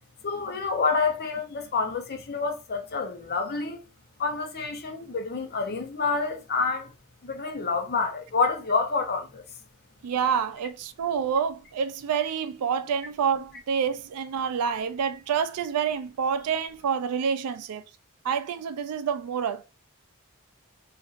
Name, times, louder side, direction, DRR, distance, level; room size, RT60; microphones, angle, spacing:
voice 1, 0.2-3.8 4.2-6.9 7.2-9.4, left 4 dB, 45° left, 0.7 m, -28 dB
voice 2, 10.0-17.8 18.2-19.6, right 7 dB, 80° right, 0.4 m, -28 dB
3.9 x 2.5 x 2.4 m
head